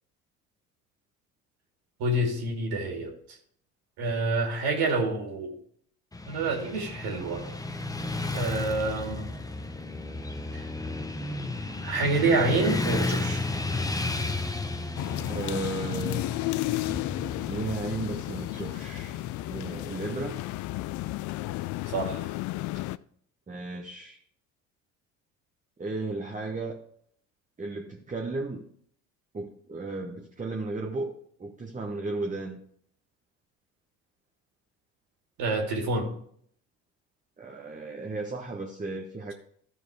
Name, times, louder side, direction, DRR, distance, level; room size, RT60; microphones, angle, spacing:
voice 1, 2.0-3.1 4.0-5.5 6.3-7.4 8.3-9.3 10.5-10.7 11.8-13.5 21.9-22.3 35.4-36.1, right 2 dB, 65° right, 2 dB, 2.6 m, -27 dB
Motorcycle / Traffic noise roadway noise, 6.1-20.2, left 2 dB, 10° left, 0.8 m, -33 dB
sound 1, 15.0-23.0, left 18 dB, 50° left, 0.4 m, -33 dB
voice 2, 15.3-16.3 17.5-19.2 19.5-20.4 23.5-24.2 25.8-26.8 27.6-28.7 29.3-31.1 31.4-32.6 37.4-39.3, right 3 dB, 20° right, 1 dB, 1.2 m, -34 dB
13.5 x 4.6 x 4.8 m, 0.63 s
hypercardioid pair, 65°, 40 cm